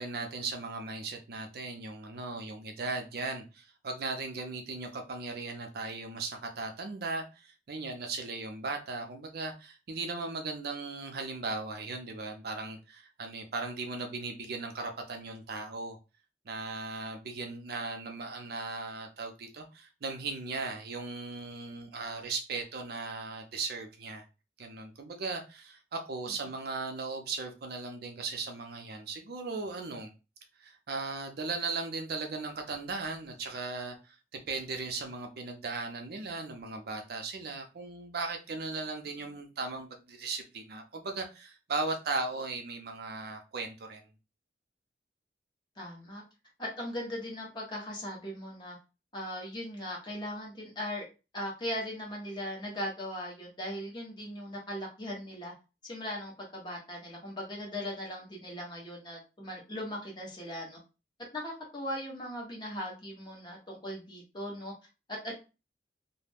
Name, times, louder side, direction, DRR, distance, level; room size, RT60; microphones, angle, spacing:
voice 1, 0.0-16.0 16.5-24.3 24.6-30.1 30.6-44.0, right 3 dB, 60° right, 0.5 m, -37 dB
voice 2, 45.8-46.2 46.6-48.8 49.1-51.1 51.3-55.5 55.8-60.8 61.3-64.7 65.2-65.3, equal, 25° left, 1.0 m, -39 dB
2.4 x 2.1 x 3.3 m
head